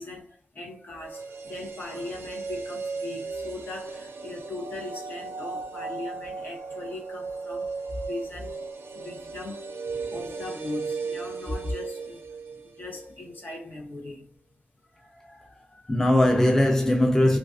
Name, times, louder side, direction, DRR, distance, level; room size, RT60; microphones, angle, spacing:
voice 1, 0.0-8.6 8.9-9.7 10.0-12.3 12.6-14.4, left 2 dB, 60° left, 0.8 m, -39 dB
sound 1, 1.0-13.1 13.4-13.5, right 4 dB, 90° right, 0.4 m, -36 dB
voice 2, 15.0-17.4, left 1 dB, 10° left, 0.4 m, -22 dB
2.4 x 2.2 x 2.4 m
wide cardioid pair, 120°, 4 cm